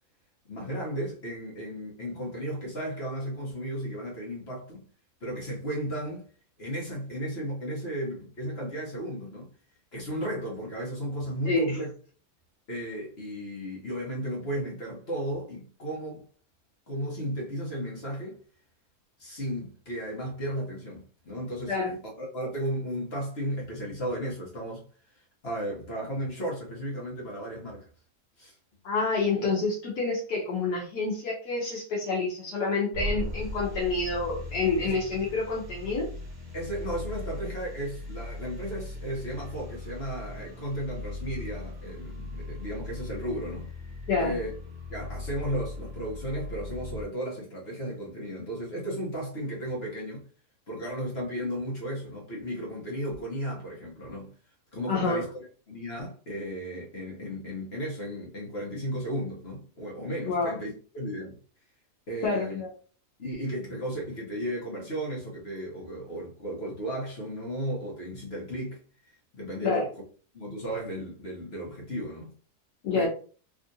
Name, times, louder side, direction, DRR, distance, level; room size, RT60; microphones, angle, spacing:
voice 1, 0.5-4.8 5.2-6.2 6.6-9.5 9.9-11.9 12.7-16.2 16.9-18.4 19.2-24.8 25.4-27.8 28.4-28.5 34.8-34.9 36.5-43.7 44.2-44.5 44.9-50.2 50.7-54.3 54.7-55.3 55.7-61.3 62.1-62.6 63.2-68.8 69.4-69.9 70.3-72.3 72.9-73.1, equal, 45° left, 1.1 m, -34 dB
voice 2, 28.8-36.1 44.1-44.4 54.9-55.2 60.3-60.5 62.2-62.7 69.6-69.8 72.8-73.1, left 3 dB, 75° left, 1.4 m, -28 dB
sound 1, 32.9-47.1, left 2 dB, 40° right, 1.4 m, -38 dB
3.5 x 2.5 x 2.7 m
omnidirectional pair, 1.8 m